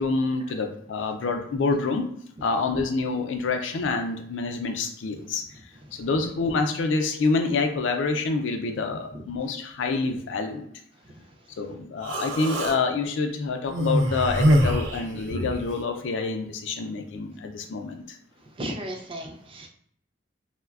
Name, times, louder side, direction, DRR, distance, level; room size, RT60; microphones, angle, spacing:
voice 1, 0.0-2.1 2.4-5.5 5.9-10.7 11.6-18.2, left 4 dB, 80° left, 5 dB, 0.4 m, -27 dB
Human voice, 12.0-12.8 13.7-15.7, equal, 80° right, 0.5 m, -23 dB
voice 2, 18.4-19.7, right 1 dB, 30° right, 2 dB, 0.4 m, -36 dB
3.1 x 2.1 x 2.3 m, 0.68 s
head